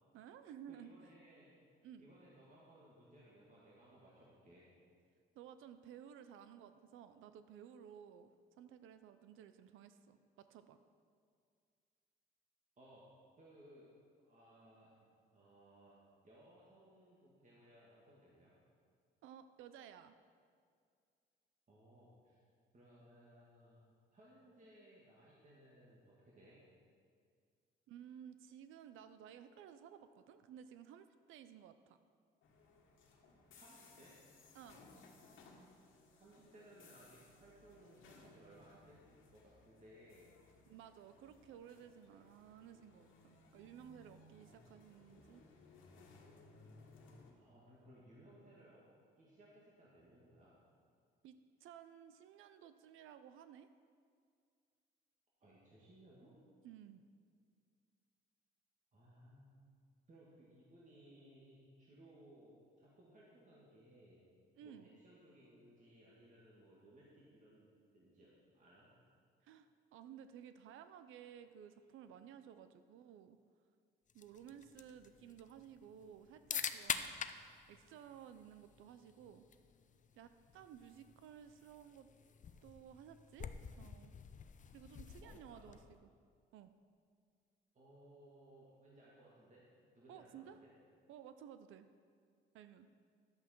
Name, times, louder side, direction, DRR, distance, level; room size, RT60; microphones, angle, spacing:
voice 1, 0.1-0.9 1.8-2.0 5.3-10.8 19.2-20.2 27.9-32.0 34.5-34.8 40.7-45.4 51.2-53.7 56.6-57.0 64.6-65.0 69.4-73.4 74.1-77.2 77.7-79.5 80.1-82.1 82.6-84.1 84.7-86.1 86.5-86.7 90.1-90.6 91.1-91.9 92.5-92.9, right 9 dB, 85° right, 11 dB, 0.5 m, -56 dB
voice 2, 0.7-1.5 2.0-4.7 12.8-13.0 13.4-13.9 14.2-16.0 16.2-18.5 21.7-22.4 22.7-26.6 33.5-34.1 36.2-40.3 47.3-48.8 49.2-50.5 55.4-56.3 58.9-59.5 60.1-64.2 64.6-68.9 85.2-85.8 87.7-89.6 89.9-90.7, right 1 dB, 40° right, -6 dB, 2.2 m, -62 dB
sound 1, 32.4-47.3, left 3 dB, 85° left, 1.6 m, -63 dB
sound 2, 74.1-86.0, left 7 dB, 40° left, 0.5 m, -47 dB
11.0 x 8.2 x 4.5 m, 2.1 s
cardioid pair, 90°, 20 cm